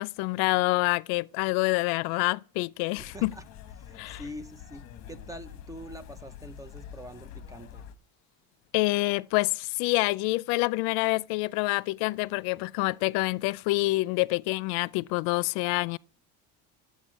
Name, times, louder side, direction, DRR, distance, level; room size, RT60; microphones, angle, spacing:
voice 1, 0.0-3.3 4.0-4.2 8.7-16.0, left 22 dB, 80° left, 0.5 m, -27 dB
sound 1, 3.0-7.9, left 9 dB, 45° left, 1.1 m, -46 dB
voice 2, 3.1-3.4 3.8-7.8, equal, 10° right, 0.5 m, -44 dB
12.5 x 8.5 x 7.4 m
cardioid pair, 165°, 37 cm